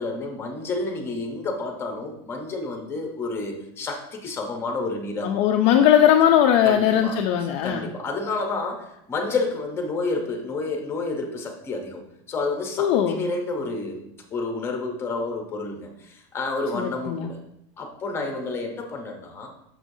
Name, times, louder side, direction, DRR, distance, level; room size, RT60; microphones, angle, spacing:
voice 1, 0.0-5.3 6.6-7.2 7.6-17.4 17.8-19.5, left 3 dB, 15° left, 2 dB, 0.8 m, -30 dB
voice 2, 5.2-7.9 12.8-13.2 16.7-17.3, left 10 dB, 40° left, 4 dB, 0.4 m, -19 dB
6.3 x 6.1 x 2.6 m, 0.79 s
supercardioid pair, 170°, 15 cm